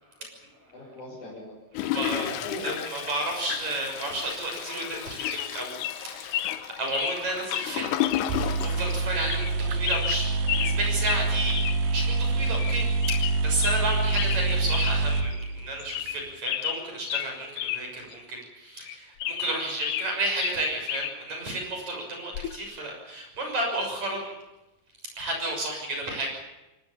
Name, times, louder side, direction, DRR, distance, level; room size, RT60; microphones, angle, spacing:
voice 1, 0.4-2.9, left 2 dB, 40° left, -4 dB, 7.4 m, -39 dB
Toilet flush, 1.7-9.8 10.3-10.4 10.5-10.6, left 12 dB, 85° left, 3.6 m, -33 dB
voice 2, 1.9-2.3 2.9-6.5 6.8-12.9 13.4-24.3 25.2-26.3, right 1 dB, 35° right, 2 dB, 7.4 m, -32 dB
sound 1, 4.8-4.9 5.2-5.5 5.8-6.0 6.3-6.6 6.9-7.2 7.5-7.7 8.0-8.3 8.6-8.7 9.3-9.5 9.8-10.8 11.0-11.2 11.5-11.8 12.1-12.2 12.5-12.8 13.0-13.8 14.1-14.4 14.7-15.0 15.3-15.4 15.8-16.2 16.4-17.8 18.1-18.2 18.8-20.1 20.4-21.1 22.3-22.6, left 13 dB, 70° left, 2.7 m, -31 dB
sound 2, 8.0-8.1 8.3-16.1, right 3 dB, 75° right, 2.0 m, -26 dB
27.5 x 18.5 x 7.2 m, 1.0 s
omnidirectional pair, 5.5 m